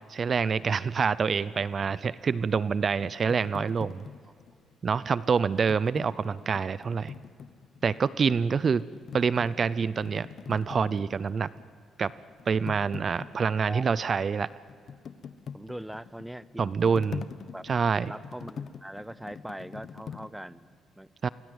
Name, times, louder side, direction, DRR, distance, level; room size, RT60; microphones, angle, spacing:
voice 1, 0.1-4.0 4.8-7.1 7.8-8.8 9.1-11.5 12.0-12.1 12.5-14.5 16.6-17.2 17.6-18.1 21.2-21.3, right 5 dB, 45° right, 18 dB, 0.6 m, -26 dB
sound 1, 1.3-4.7 5.4-8.1 8.5-11.8 12.0-20.3, left 6 dB, 55° left, 1.2 m, -44 dB
voice 2, 8.3-8.7 13.7-13.9 15.5-16.7 17.5-17.6 18.0-21.1, right 1 dB, 5° right, 17 dB, 0.7 m, -42 dB
27.5 x 23.5 x 8.0 m, 2.4 s
cardioid pair, 90°, 0 cm